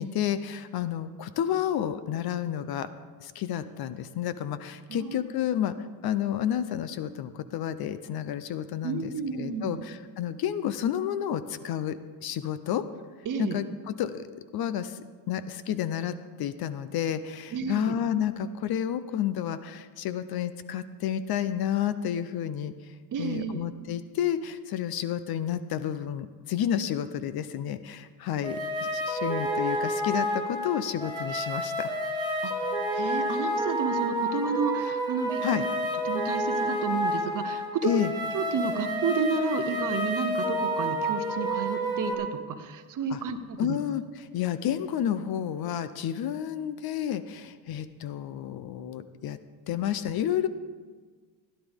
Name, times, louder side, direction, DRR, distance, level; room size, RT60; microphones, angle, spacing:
voice 1, 0.0-2.9 3.2-5.7 6.0-12.8 13.4-14.3 14.5-22.7 23.2-28.6 28.9-31.9 35.4-35.6 37.8-38.1 43.1-43.2 43.6-49.4 49.7-50.5, left 10 dB, 50° left, 13 dB, 0.6 m, -30 dB
voice 2, 8.8-9.8 13.3-13.6 17.5-18.0 23.1-23.6 32.4-35.6 36.0-38.0 38.3-43.8, right 5 dB, 40° right, 9 dB, 0.9 m, -31 dB
sound 1, 28.4-42.1, equal, 10° right, 1.8 m, -29 dB
16.0 x 11.0 x 3.6 m, 1.5 s
cardioid pair, 130°, 49 cm